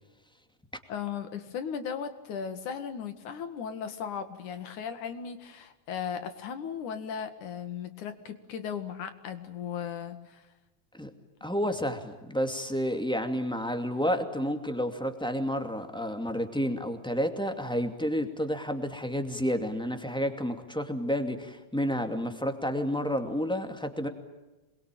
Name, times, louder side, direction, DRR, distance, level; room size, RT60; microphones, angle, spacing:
voice 1, 0.9-10.4, left 7 dB, 80° left, 9 dB, 3.4 m, -36 dB
voice 2, 11.4-24.1, equal, ahead, 6 dB, 1.9 m, -30 dB
27.0 x 22.0 x 9.2 m, 1.1 s
omnidirectional pair, 3.4 m